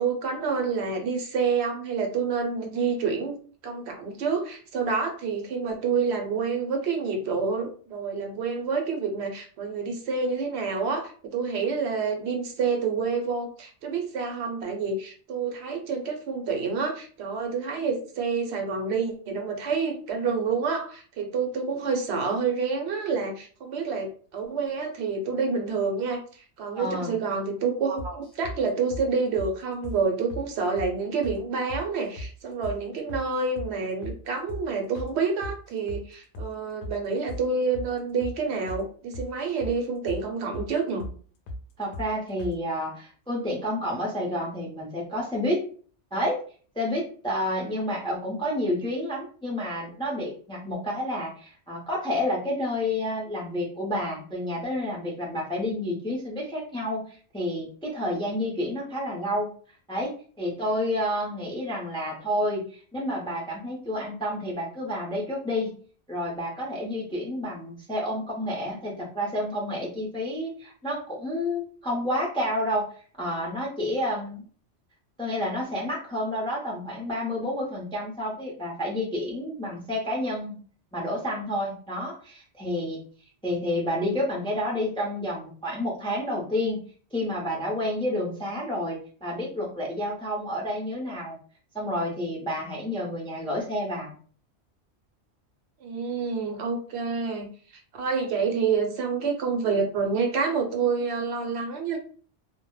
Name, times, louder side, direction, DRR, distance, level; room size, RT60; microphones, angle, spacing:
voice 1, 0.0-3.3 3.6-26.2 26.6-41.1 95.8-97.5 97.9-102.0, right 5 dB, 75° right, 3 dB, 0.8 m, -28 dB
voice 2, 26.7-27.2 41.8-45.6 46.1-46.4 46.7-59.5 59.9-60.1 60.4-65.7 66.1-72.9 73.2-74.4 75.2-80.6 80.9-83.0 83.4-86.8 87.1-91.4 91.7-94.1, left 1 dB, 10° left, -2 dB, 0.3 m, -29 dB
sound 1, 28.0-28.6 28.9-29.1 29.4-29.5 29.8-30.0 30.3-30.5 30.8-30.9 31.2-31.4 31.7-32.3 32.6-32.8 33.1-33.3 33.6-33.7 34.0-34.2 34.5-34.6 34.9-35.1 35.4-36.0 36.3-36.5 36.8-37.0 37.3-37.4 37.7-37.9 38.2-38.4 38.7-38.8 39.1-39.8 40.1-40.2 40.5-40.7 41.0-41.2 41.5-41.6 41.9-42.1 42.4-42.6, left 1 dB, 60° left, 0.6 m, -37 dB
2.1 x 2.0 x 3.0 m, 0.43 s
omnidirectional pair, 1.2 m